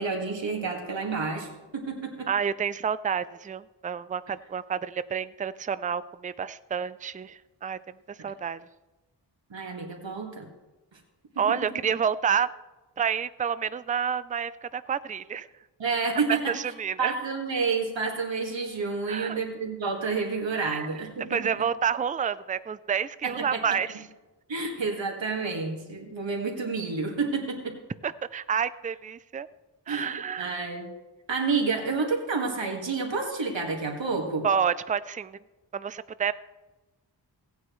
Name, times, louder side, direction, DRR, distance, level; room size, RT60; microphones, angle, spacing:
voice 1, 0.0-2.3 9.5-10.5 11.4-11.7 15.8-16.5 17.0-21.7 23.2-23.8 24.5-27.8 29.9-30.8 31.3-34.5, right 4 dB, 80° right, 1 dB, 2.0 m, -30 dB
voice 2, 2.3-7.8 8.1-8.6 11.4-12.5 13.0-15.5 16.3-17.1 19.1-19.4 20.6-20.9 21.3-24.0 28.0-29.5 29.9-30.7 34.4-35.4 35.7-36.3, right 7 dB, 20° right, 15 dB, 0.3 m, -29 dB
16.5 x 9.2 x 3.2 m, 1.1 s
wide cardioid pair, 70°, 44 cm